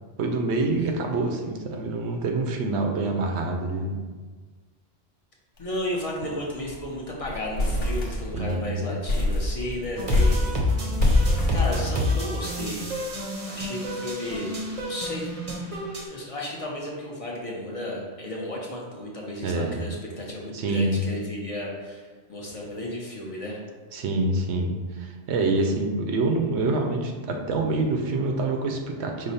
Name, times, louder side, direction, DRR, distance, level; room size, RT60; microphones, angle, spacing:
voice 1, 0.2-4.0 8.3-8.8 19.4-19.8 20.5-21.0 23.9-29.3, right 2 dB, 80° right, 3 dB, 0.9 m, -26 dB
sound 1, 5.6-5.8 6.1-6.2 6.5-6.9 7.2-8.6 9.1-12.4, left 1 dB, 85° left, 1.2 m, -25 dB
voice 2, 5.6-11.0 11.5-12.9 13.5-14.5 14.8-15.3 15.6-23.6, left 1 dB, 35° left, -3 dB, 0.7 m, -34 dB
sound 2, 10.0-16.1, left 1 dB, 40° right, 0.7 m, -28 dB
5.1 x 2.0 x 4.1 m, 1.4 s
omnidirectional pair, 1.1 m